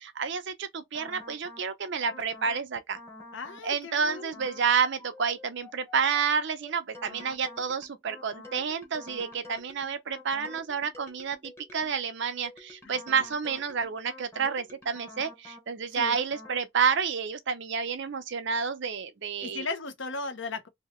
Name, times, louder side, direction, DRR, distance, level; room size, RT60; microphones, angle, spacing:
voice 1, 0.0-3.0 3.6-19.7, right 6 dB, 55° right, 0.5 m, -30 dB
sound 1, 0.9-1.7 2.1-2.7 2.9-3.7 4.1-4.7 5.0-12.0 12.4-15.7 16.1-16.7, left 2 dB, 10° left, 0.9 m, -48 dB
voice 2, 3.3-4.4 12.8-13.0 15.9-16.2 19.4-20.7, left 3 dB, 55° left, 0.8 m, -36 dB
2.9 x 2.8 x 3.0 m
head